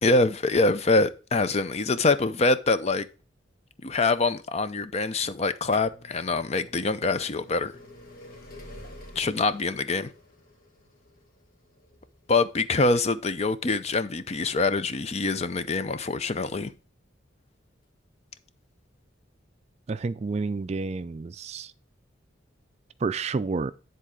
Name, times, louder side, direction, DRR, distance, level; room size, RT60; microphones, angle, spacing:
voice 1, 0.0-3.1 3.8-7.7 9.2-10.1 12.3-16.7, left 3 dB, 35° left, 0.5 m, -24 dB
sound 1, 5.4-17.0 17.9-18.0 18.9-19.0 19.2-19.3, left 1 dB, 50° left, 1.9 m, -49 dB
voice 2, 19.9-21.7 23.0-23.7, right 4 dB, 35° right, 0.3 m, -29 dB
9.9 x 4.0 x 4.9 m
head